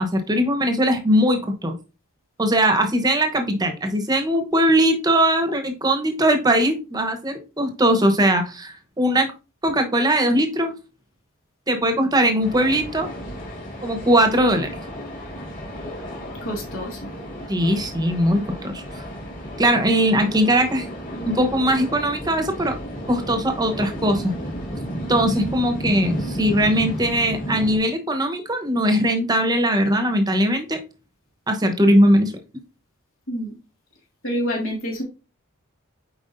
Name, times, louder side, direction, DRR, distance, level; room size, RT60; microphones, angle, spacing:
voice 1, 0.0-1.7 2.4-9.3 9.6-10.7 11.7-13.1 13.8-14.7 17.5-18.8 19.6-20.9 21.2-22.7 23.1-24.3 25.1-30.8 31.5-32.3, right 1 dB, 20° right, 5 dB, 1.0 m, -20 dB
sound 1, 12.4-27.8, equal, 40° left, 2.6 m, -33 dB
voice 2, 16.4-17.1 25.4-25.5 33.3-33.6 34.2-35.0, equal, 65° left, -1 dB, 2.0 m, -28 dB
7.7 x 4.8 x 2.6 m, 0.31 s
head